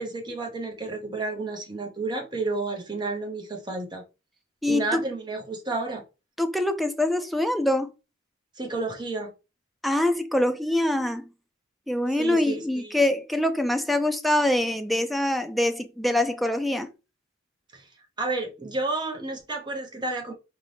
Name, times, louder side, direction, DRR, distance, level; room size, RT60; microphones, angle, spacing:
voice 1, 0.0-4.0 4.6-6.0 8.6-9.3 12.1-13.0 17.7-17.9 18.2-20.3, right 3 dB, 20° right, 0.8 m, -31 dB
voice 2, 4.6-5.0 6.4-7.9 9.8-11.3 11.9-16.9, left 1 dB, ahead, 0.3 m, -24 dB
4.0 x 2.7 x 3.3 m
head